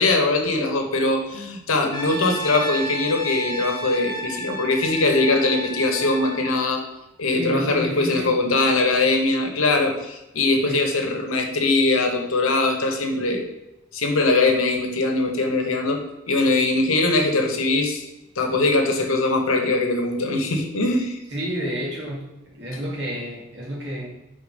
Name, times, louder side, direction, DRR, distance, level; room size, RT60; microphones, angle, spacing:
voice 1, 0.0-6.8 7.2-13.4 13.9-16.0 16.3-18.0 18.4-21.2, left 2 dB, 80° left, 3 dB, 1.0 m, -21 dB
Brass instrument, 1.9-6.8, right 1 dB, 20° left, 0.9 m, -32 dB
voice 2, 7.3-8.4 10.7-10.8 21.3-24.1, equal, 55° right, -3 dB, 2.0 m, -30 dB
5.0 x 4.0 x 5.3 m, 0.95 s
head